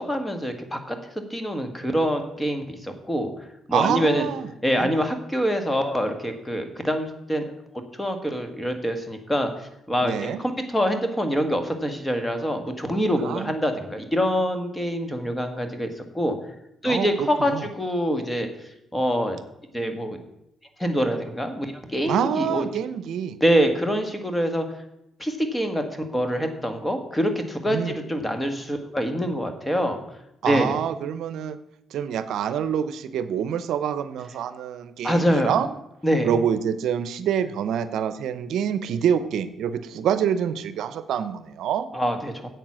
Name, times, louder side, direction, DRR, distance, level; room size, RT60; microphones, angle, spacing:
voice 1, 0.0-3.3 3.7-4.3 4.6-7.4 8.0-16.4 16.8-18.5 18.9-19.4 19.7-20.2 20.8-22.6 23.4-24.6 25.2-30.0 30.4-30.7 35.0-35.5 36.0-36.3 41.9-42.5, equal, 10° left, 6 dB, 1.7 m, -25 dB
voice 2, 3.7-4.5 4.7-4.9 10.0-10.4 13.2-13.5 16.8-17.7 22.1-23.4 27.7-28.0 30.4-31.6 31.9-35.7 36.2-41.9, right 8 dB, 75° right, 13 dB, 0.6 m, -26 dB
9.1 x 8.1 x 6.2 m, 0.84 s
cardioid pair, 90°, 0 cm